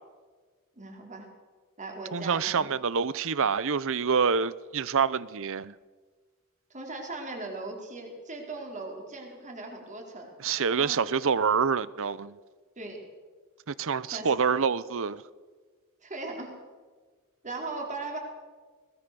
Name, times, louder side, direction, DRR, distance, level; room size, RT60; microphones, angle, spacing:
voice 1, 0.8-1.3 1.8-2.7 6.7-10.3 10.8-11.0 12.8-13.0 14.1-14.3 16.0-16.5 17.4-18.2, right 2 dB, 35° right, 4.4 m, -38 dB
voice 2, 2.1-5.7 10.4-12.4 13.7-15.2, right 6 dB, 65° right, 0.7 m, -27 dB
21.0 x 20.5 x 6.9 m
head